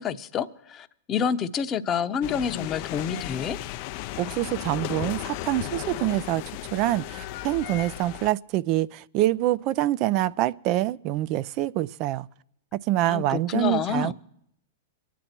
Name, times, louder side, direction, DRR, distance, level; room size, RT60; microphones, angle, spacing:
voice 1, 0.0-3.6 13.1-14.1, left 7 dB, 30° left, 0.9 m, -28 dB
sound 1, 2.2-8.3, left 15 dB, 50° left, 0.5 m, -35 dB
voice 2, 4.2-6.4 6.7-12.3 12.7-14.1, right 15 dB, 45° right, 0.4 m, -25 dB
24.5 x 9.2 x 4.4 m
hypercardioid pair, 110°, 0 cm